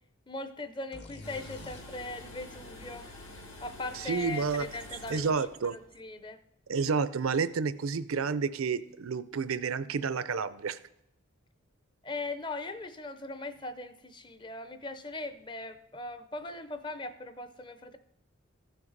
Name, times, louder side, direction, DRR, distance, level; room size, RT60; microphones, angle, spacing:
voice 1, 0.3-3.1 3.6-6.4 12.0-18.0, left 2 dB, 20° left, 10 dB, 0.5 m, -40 dB
sound 1, 0.9-4.6, left 2 dB, 50° left, 1.0 m, -51 dB
sound 2, 1.2-5.7 5.9-6.0, left 1 dB, 80° left, 2.3 m, -47 dB
voice 2, 4.1-4.7 5.1-5.8 6.7-10.8, right 5 dB, 85° right, 15 dB, 0.5 m, -30 dB
14.5 x 6.1 x 4.0 m, 0.78 s
head